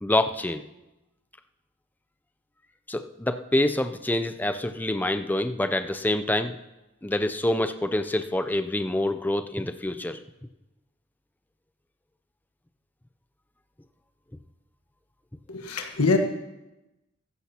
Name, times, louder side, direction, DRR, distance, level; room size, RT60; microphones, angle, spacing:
voice 1, 0.0-0.6 2.9-6.6 7.0-10.2, left 1 dB, 10° left, 9 dB, 0.4 m, -26 dB
voice 2, 15.5-16.2, left 3 dB, 85° left, 4 dB, 1.4 m, -24 dB
15.5 x 13.5 x 2.9 m, 1.0 s
head